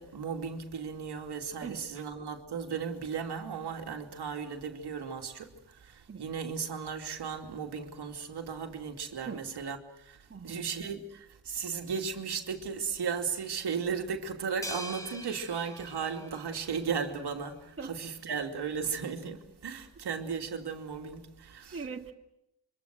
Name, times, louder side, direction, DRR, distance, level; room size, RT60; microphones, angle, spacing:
voice 1, 0.0-21.8, right 6 dB, 65° right, 2.7 m, -36 dB
voice 2, 1.6-2.0 6.1-6.3 9.3-9.5 10.3-10.6 17.8-18.0 21.7-22.1, right 5 dB, 30° right, 2.0 m, -41 dB
sound 1, 14.6-17.1, equal, 5° left, 4.7 m, -43 dB
27.0 x 24.5 x 6.4 m
cardioid pair, 90°, 43 cm